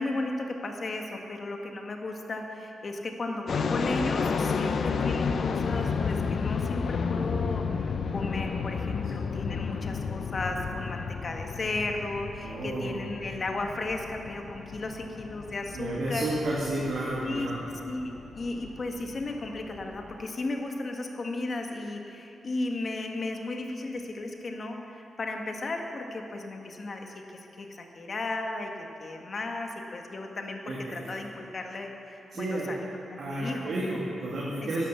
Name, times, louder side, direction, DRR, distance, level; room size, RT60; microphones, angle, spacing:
voice 1, 0.0-16.3 17.2-17.5 17.8-32.8 33.1-33.7 34.6-34.9, left 2 dB, 50° left, 3 dB, 1.8 m, -35 dB
sound 1, 3.5-20.2, left 5 dB, 65° left, 0.7 m, -32 dB
voice 2, 12.4-13.0 15.7-17.6 30.7-31.2 32.3-32.9 33.2-34.9, right 1 dB, 65° right, -6 dB, 2.7 m, -32 dB
11.5 x 11.0 x 7.3 m, 2.8 s
supercardioid pair, 50°, 0 cm